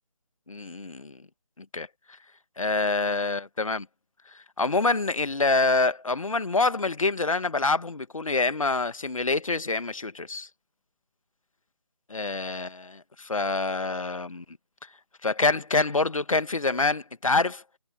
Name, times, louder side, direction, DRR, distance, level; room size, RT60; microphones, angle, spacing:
voice 1, 0.5-1.2 1.6-1.9 2.6-3.9 4.6-10.5 12.1-14.4 15.2-17.6, left 3 dB, 70° left, 1.6 m, -26 dB
figure-of-eight pair, 155°, 17 cm